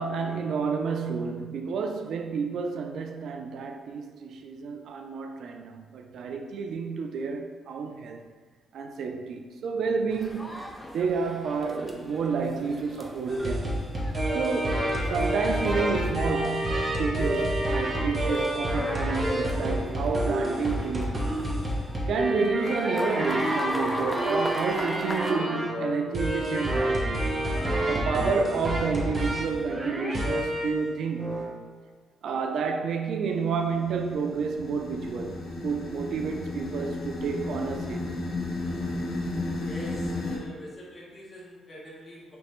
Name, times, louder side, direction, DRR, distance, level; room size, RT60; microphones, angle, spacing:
voice 1, 0.0-8.2 8.7-10.6 10.9-13.7 14.3-21.2 22.1-27.3 27.9-31.6 32.2-38.0, right 5 dB, 70° right, 0.4 m, -30 dB
sound 1, 10.1-25.3, equal, 5° left, 0.5 m, -38 dB
sound 2, 13.3-30.8 31.2-31.5, right 1 dB, 30° right, 0.8 m, -28 dB
sound 3, 33.3-40.4, left 2 dB, 70° left, 0.8 m, -34 dB
voice 2, 39.6-42.4, left 1 dB, 35° left, 1.2 m, -44 dB
5.1 x 3.2 x 3.0 m
cardioid pair, 130°, 0 cm